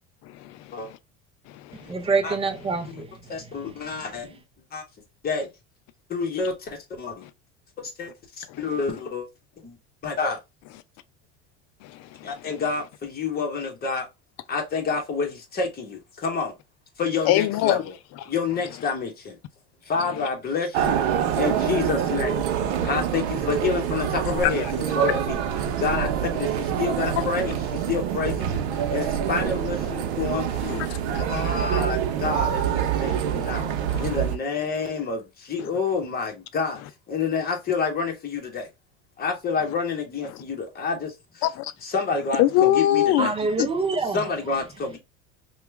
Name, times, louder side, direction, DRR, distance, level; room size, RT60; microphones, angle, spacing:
voice 1, 0.2-0.9 1.5-1.9 7.2-7.3 8.5-8.6 11.8-12.5 17.2-17.8 30.5-31.4 33.0-33.2 33.9-34.1 41.4-41.7 42.4-43.3 43.6-43.7, left 13 dB, 50° left, 0.5 m, -24 dB
voice 2, 1.9-3.5 43.2-44.2, right 4 dB, 15° right, 0.5 m, -26 dB
voice 3, 3.3-4.4 4.7-4.8 5.2-5.5 6.1-7.3 7.8-8.1 8.4-9.3 9.6-9.8 10.0-10.4 12.2-14.1 14.5-16.5 17.0-17.9 18.2-19.4 19.8-21.0 21.3-22.4 22.8-25.4 25.8-28.6 28.9-30.8 31.2-33.7 34.0-36.8 37.1-38.7 39.2-41.4 41.8-43.3 44.1-45.0, left 4 dB, 30° left, 1.1 m, -28 dB
sound 1, 20.7-34.4, right 9 dB, 80° right, 0.7 m, -26 dB
2.9 x 2.3 x 3.3 m
supercardioid pair, 120°, 33 cm